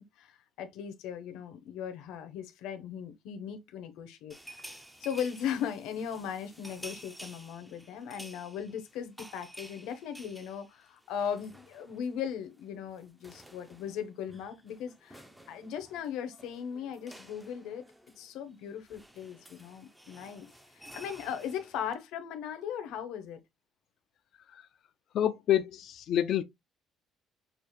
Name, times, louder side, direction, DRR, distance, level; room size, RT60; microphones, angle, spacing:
voice 1, 0.0-4.7 5.0-17.8 18.2-20.5 20.7-23.4, left 8 dB, 80° left, 0.9 m, -38 dB
sound 1, 4.3-12.2 12.4-12.6 12.9-22.0, equal, 5° right, 0.5 m, -52 dB
voice 2, 25.1-26.4, left 11 dB, 50° left, 0.4 m, -27 dB
6.6 x 2.5 x 3.0 m
cardioid pair, 175°, 0 cm